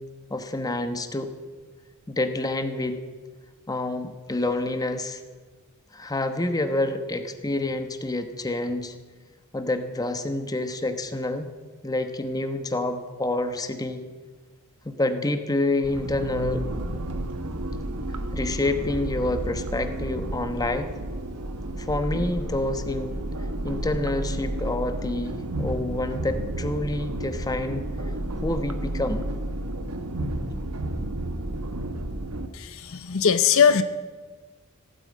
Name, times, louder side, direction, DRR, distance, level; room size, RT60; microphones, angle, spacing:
voice 1, 0.3-1.3 2.1-3.0 3.7-5.2 5.9-8.9 9.5-11.5 11.8-14.0 14.8-16.6 18.3-20.9 21.8-23.2 23.6-27.9 28.4-29.3, left 2 dB, 15° left, 8 dB, 1.1 m, -28 dB
sound 1, 15.8-32.5, right 1 dB, 85° right, 1.2 m, -31 dB
voice 2, 32.9-33.8, left 7 dB, 65° left, 11 dB, 0.7 m, -19 dB
16.0 x 9.4 x 8.5 m, 1.4 s
head